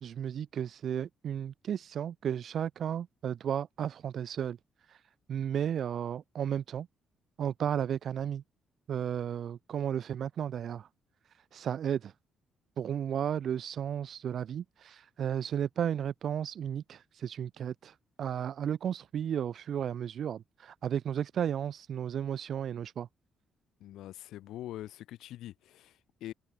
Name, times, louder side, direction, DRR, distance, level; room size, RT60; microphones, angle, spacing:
voice 1, 0.0-4.6 4.9-5.0 5.3-6.9 7.4-8.4 8.9-10.9 11.5-12.1 12.8-23.1, right 9 dB, 60° right, 0.5 m, -34 dB
voice 2, 23.8-26.3, left 13 dB, 85° left, 0.5 m, -44 dB
cardioid pair, 90°, 0 cm